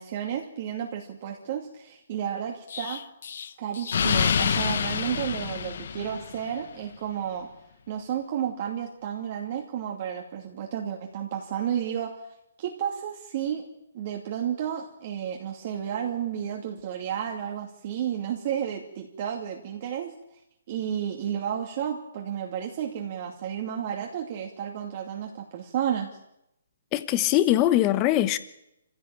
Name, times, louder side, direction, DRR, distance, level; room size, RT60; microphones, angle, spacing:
voice 1, 0.0-3.0 3.6-7.5 7.9-12.1 12.6-13.7 13.9-20.1 20.7-26.1, right 9 dB, 35° right, 2.5 m, -32 dB
Explosion, 2.7-6.5, left 7 dB, 55° left, 1.1 m, -27 dB
voice 2, 26.9-28.4, left 13 dB, 20° left, 1.1 m, -22 dB
26.5 x 16.0 x 8.9 m
hypercardioid pair, 170°, 0 cm